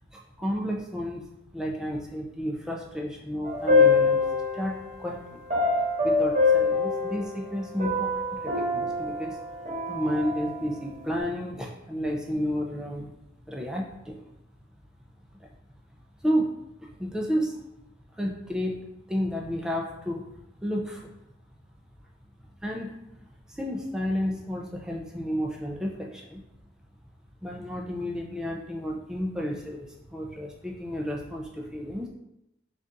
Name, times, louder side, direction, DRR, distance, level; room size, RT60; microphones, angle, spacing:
voice 1, 0.1-1.2 1.5-4.2 4.5-5.4 6.0-9.4 9.9-13.1 13.5-14.2 16.2-16.5 16.8-17.6 18.2-18.7 19.1-20.2 20.6-21.0 22.6-22.9 23.5-26.4 27.4-32.1, equal, 5° right, -1 dB, 0.4 m, -31 dB
sound 1, 3.4-4.9 5.5-7.5 7.8-10.8, left 3 dB, 35° right, 1.1 m, -24 dB
3.8 x 2.4 x 3.8 m, 0.87 s
head